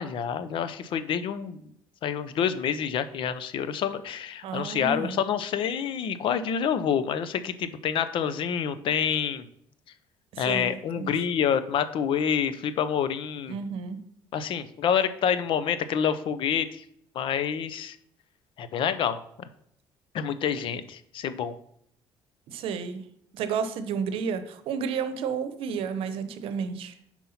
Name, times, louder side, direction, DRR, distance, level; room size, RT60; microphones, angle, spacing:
voice 1, 0.0-1.6 2.0-9.4 10.4-13.6 14.3-16.8 17.1-18.0 18.6-19.2 20.1-21.5, left 8 dB, 65° left, 13 dB, 0.6 m, -27 dB
voice 2, 4.4-5.2 10.3-11.1 13.5-14.0 22.5-23.0 23.3-26.9, right 6 dB, 75° right, 11 dB, 0.8 m, -31 dB
5.5 x 4.5 x 5.6 m, 0.70 s
cardioid pair, 95°, 10 cm